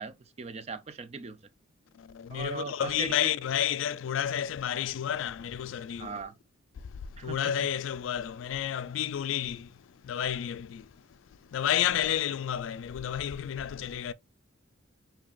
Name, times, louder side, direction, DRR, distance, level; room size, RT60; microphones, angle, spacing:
voice 1, 0.0-1.4 2.3-3.3 6.0-6.3 7.2-7.7 11.9-12.0, right 4 dB, 30° right, 0.4 m, -39 dB
voice 2, 2.0-6.2 6.9-9.7 10.0-10.9 11.5-14.1, left 10 dB, 70° left, 0.3 m, -31 dB
5.2 x 2.8 x 2.4 m
head